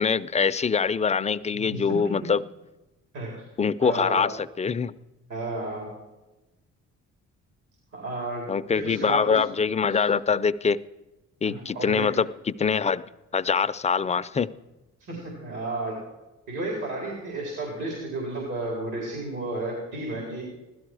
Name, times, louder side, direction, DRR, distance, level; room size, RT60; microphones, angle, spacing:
voice 1, 0.0-2.4 3.6-4.3 4.6-4.9 8.5-10.8 11.4-13.0 13.3-14.5, left 6 dB, 25° left, 0.4 m, -24 dB
voice 2, 1.5-2.0 3.1-3.3 3.8-4.3 5.3-5.9 7.9-9.4 9.9-10.0 11.4-12.1 15.0-15.9 16.5-20.4, right 2 dB, 80° right, 4.2 m, -32 dB
16.0 x 12.5 x 4.8 m
cardioid pair, 90°, 30 cm